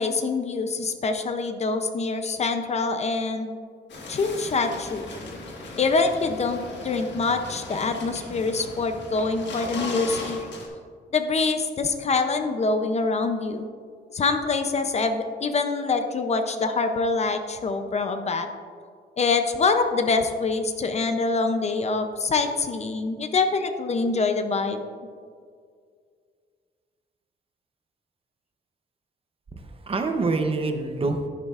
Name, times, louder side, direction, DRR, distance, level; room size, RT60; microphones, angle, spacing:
voice 1, 0.0-3.5 4.1-5.1 5.8-10.4 11.1-13.7 14.1-18.5 19.2-24.8, left 4 dB, 40° left, 7 dB, 0.5 m, -25 dB
sound 1, 3.9-10.7, left 2 dB, 85° left, 1.6 m, -37 dB
voice 2, 29.5-31.3, right 3 dB, 30° right, 6 dB, 0.7 m, -26 dB
11.0 x 9.5 x 2.4 m, 2.1 s
wide cardioid pair, 170°, 18 cm